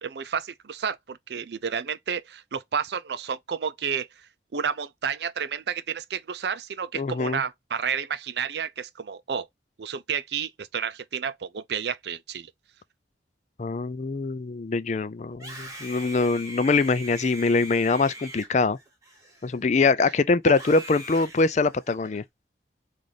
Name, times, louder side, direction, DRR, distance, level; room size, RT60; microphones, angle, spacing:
voice 1, 0.0-4.1 4.5-9.5 9.8-12.5, right 7 dB, 70° right, 0.5 m, -31 dB
voice 2, 6.9-7.4 13.6-18.8 19.4-22.2, left 3 dB, 40° left, 0.4 m, -23 dB
Screaming, 15.3-19.8 20.4-22.2, right 1 dB, 20° right, 1.7 m, -42 dB
6.2 x 2.6 x 3.3 m
head